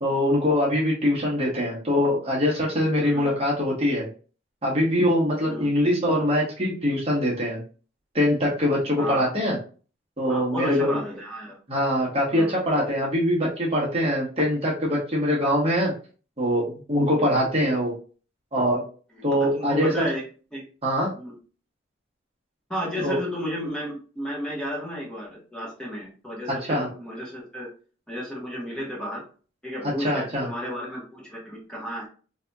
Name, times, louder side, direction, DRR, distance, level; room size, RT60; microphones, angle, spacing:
voice 1, 0.0-4.1 4.6-7.6 8.1-9.6 10.2-11.0 11.7-15.9 16.4-17.9 18.5-18.8 19.2-20.1 20.8-21.1 23.0-23.2 26.5-26.9 30.0-30.5, equal, 30° right, -3 dB, 1.1 m, -23 dB
voice 2, 3.0-3.3 5.4-5.7 9.0-9.3 10.3-11.5 12.3-12.6 17.1-17.3 19.5-20.2 20.5-20.6 21.2-21.3 22.7-27.7 28.1-29.2 29.6-32.1, equal, 5° left, -4 dB, 1.2 m, -33 dB
4.1 x 2.8 x 2.3 m, 0.38 s
head